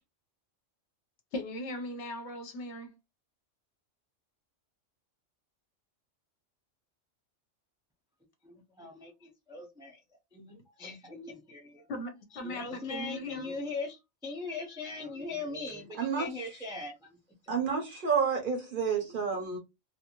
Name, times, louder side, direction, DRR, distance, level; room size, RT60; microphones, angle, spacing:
voice 1, 1.3-3.0 11.9-13.6, left 1 dB, 65° left, 0.9 m, -39 dB
voice 2, 8.4-10.0 10.3-11.9 12.4-17.2 17.4-17.8 18.9-19.1, left 3 dB, 5° right, 0.3 m, -40 dB
voice 3, 16.0-16.3 17.5-19.6, right 6 dB, 50° right, 0.7 m, -29 dB
2.6 x 2.5 x 2.9 m
omnidirectional pair, 1.3 m